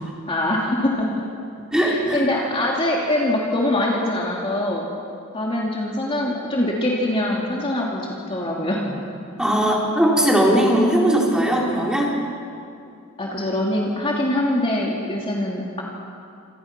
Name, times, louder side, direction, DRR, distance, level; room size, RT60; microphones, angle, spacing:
voice 1, 0.3-1.2 1.7-4.8 5.3-8.9 13.2-15.8, left 1 dB, 25° left, -3 dB, 2.8 m, -23 dB
voice 2, 1.7-2.3 9.4-12.1, right 1 dB, 5° right, -3 dB, 4.2 m, -19 dB
28.0 x 27.0 x 6.1 m, 2.5 s
head